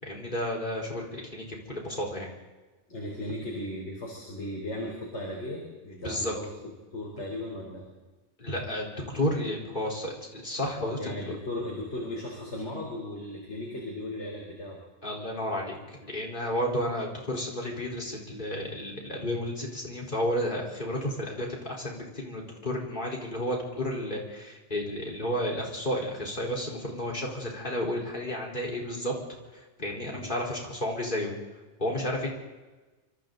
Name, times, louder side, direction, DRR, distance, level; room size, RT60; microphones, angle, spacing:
voice 1, 0.0-2.3 6.0-6.3 8.4-11.1 15.0-29.1 29.5-31.3 31.8-32.3, left 1 dB, 45° left, -2 dB, 4.6 m, -32 dB
voice 2, 2.9-6.5 6.9-7.9 10.8-14.8 30.1-30.3, left 1 dB, 75° left, -1 dB, 4.3 m, -36 dB
27.5 x 26.0 x 4.0 m, 1.2 s
omnidirectional pair, 1.2 m